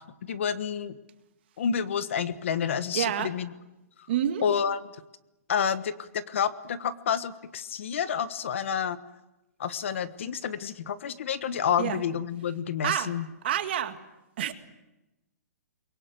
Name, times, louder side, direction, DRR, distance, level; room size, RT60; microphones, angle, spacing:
voice 1, 0.3-1.0 1.6-3.5 4.4-4.8 5.5-9.0 9.6-13.3, left 7 dB, 50° left, 13 dB, 1.3 m, -29 dB
voice 2, 2.9-3.3 4.1-4.4 11.8-12.0 12.8-13.1 13.4-14.0 14.4-14.5, right 11 dB, 40° right, 8 dB, 1.9 m, -27 dB
29.5 x 22.5 x 7.8 m, 0.97 s
hypercardioid pair, 175°, 9 cm